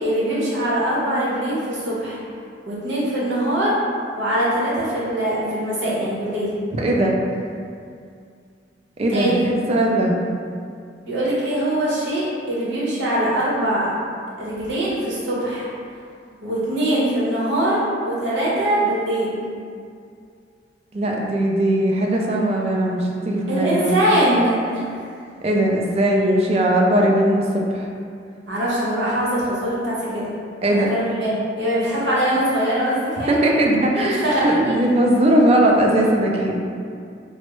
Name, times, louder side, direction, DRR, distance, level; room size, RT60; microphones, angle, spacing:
voice 1, 0.0-2.2 2.7-3.7 4.1-6.5 9.1-9.5 11.1-13.9 14.4-15.7 16.4-19.3 23.5-24.8 28.5-30.3 30.7-31.3 31.6-33.4 34.0-34.7, right 1 dB, 85° right, -7 dB, 0.9 m, -22 dB
voice 2, 6.7-7.2 9.0-10.2 20.9-24.0 25.4-27.9 30.6-30.9 33.3-36.6, right 1 dB, 35° right, -1 dB, 0.3 m, -19 dB
3.3 x 2.0 x 3.0 m, 2.3 s
head